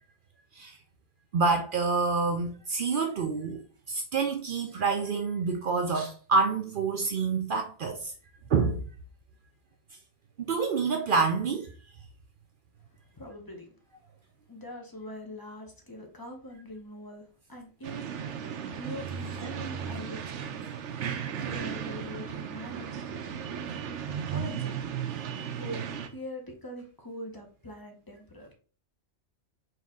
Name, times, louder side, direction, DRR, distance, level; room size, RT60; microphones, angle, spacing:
voice 1, 1.3-3.6 3.9-8.1 8.5-8.8 10.4-11.7 19.4-19.5, right 4 dB, 60° right, 0.6 m, -27 dB
voice 2, 13.2-13.6 14.5-18.1 18.7-20.8 21.4-23.3 24.3-25.0 25.6-25.8 26.1-28.5, equal, 25° left, 0.6 m, -43 dB
sound 1, 17.8-26.1, right 8 dB, 85° right, 0.9 m, -35 dB
4.2 x 2.8 x 3.5 m
omnidirectional pair, 1.2 m